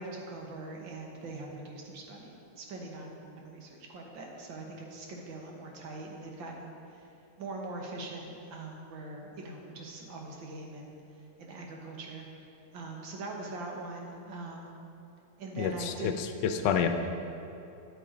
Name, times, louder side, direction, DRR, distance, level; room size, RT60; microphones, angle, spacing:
voice 1, 0.0-7.0 7.4-10.9 11.4-12.5 12.7-14.8 15.4-16.1, right 2 dB, 90° right, 0 dB, 1.9 m, -42 dB
voice 2, 15.6-16.9, left 8 dB, 75° left, 7 dB, 1.2 m, -29 dB
9.9 x 8.6 x 3.8 m, 2.7 s
omnidirectional pair, 2.0 m